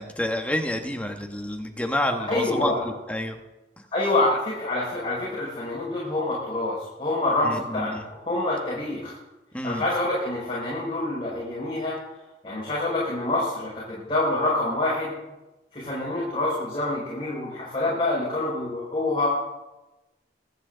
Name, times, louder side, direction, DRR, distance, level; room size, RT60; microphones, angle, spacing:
voice 1, 0.0-3.4 7.4-8.0 9.5-9.8, left 1 dB, 10° left, 4 dB, 1.3 m, -29 dB
voice 2, 2.3-2.8 3.9-9.1 9.6-12.0 12.4-15.1 15.7-19.3, left 2 dB, 30° left, -7 dB, 5.4 m, -26 dB
24.5 x 9.1 x 3.9 m, 1.0 s
head